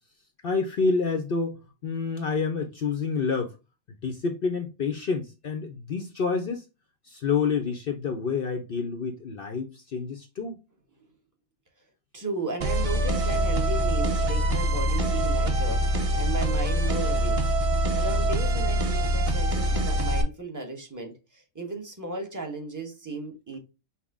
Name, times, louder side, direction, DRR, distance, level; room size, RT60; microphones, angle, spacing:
voice 1, 0.4-3.5 3.9-6.6 7.0-10.6, left 5 dB, 60° left, 0.6 m, -28 dB
voice 2, 12.1-17.4 17.9-23.6, right 3 dB, 15° right, 0.8 m, -35 dB
sound 1, 12.6-20.2, equal, 45° right, 0.4 m, -24 dB
5.8 x 2.1 x 3.4 m
omnidirectional pair, 1.5 m